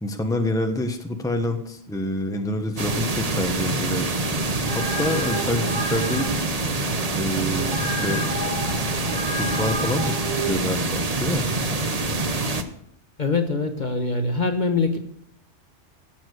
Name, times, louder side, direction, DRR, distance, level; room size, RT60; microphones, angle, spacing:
voice 1, 0.0-4.4 4.7-6.3 7.2-8.2 9.4-11.5, left 1 dB, 5° left, 5 dB, 1.1 m, -27 dB
sound 1, 2.8-12.6, right 2 dB, 35° right, 1.0 m, -25 dB
sound 2, 4.4-10.5, equal, 20° right, 3.0 m, -32 dB
voice 2, 13.2-15.0, left 3 dB, 40° left, 6 dB, 1.3 m, -23 dB
17.5 x 7.2 x 6.5 m, 0.68 s
omnidirectional pair, 1.3 m